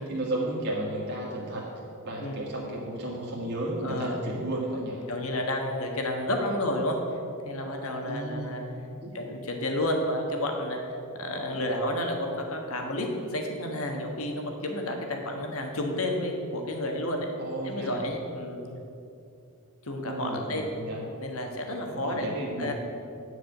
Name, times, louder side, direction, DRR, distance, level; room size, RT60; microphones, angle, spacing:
voice 1, 0.0-1.6 2.0-5.1 8.0-8.7 9.0-9.1 17.4-18.0 18.6-18.8 20.0-21.1 21.9-22.7, right 1 dB, 50° right, -5 dB, 1.8 m, -33 dB
voice 2, 3.8-4.2 5.1-7.0 7.4-8.6 9.1-10.8 11.2-17.3 17.6-18.7 19.9-20.7 21.2-22.3 22.6-22.7, left 1 dB, 70° left, 2 dB, 1.3 m, -31 dB
9.6 x 4.9 x 7.7 m, 2.7 s
head